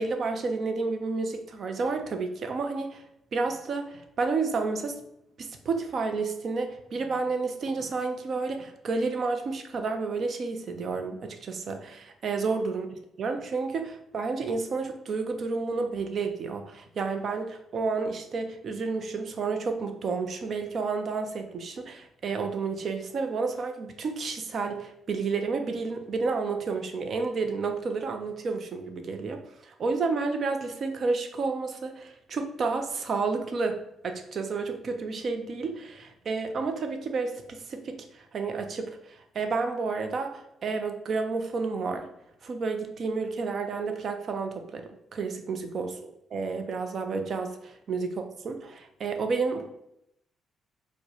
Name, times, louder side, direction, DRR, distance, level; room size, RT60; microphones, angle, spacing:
voice 1, 0.0-3.0 3.3-5.0 5.4-12.9 13.2-33.8 34.0-42.0 42.4-46.0 46.3-49.7, right 4 dB, 55° right, 6 dB, 0.5 m, -31 dB
4.5 x 2.1 x 2.8 m, 0.79 s
cardioid pair, 90°, 0 cm